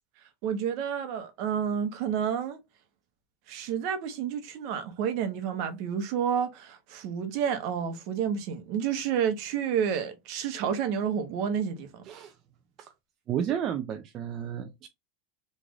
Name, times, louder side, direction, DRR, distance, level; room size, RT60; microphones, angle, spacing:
voice 1, 0.4-2.6 3.5-12.0, right 8 dB, 55° right, 0.9 m, -30 dB
voice 2, 13.3-14.9, right 9 dB, 35° right, 0.4 m, -32 dB
3.2 x 2.4 x 3.6 m
supercardioid pair, 150°, 0 cm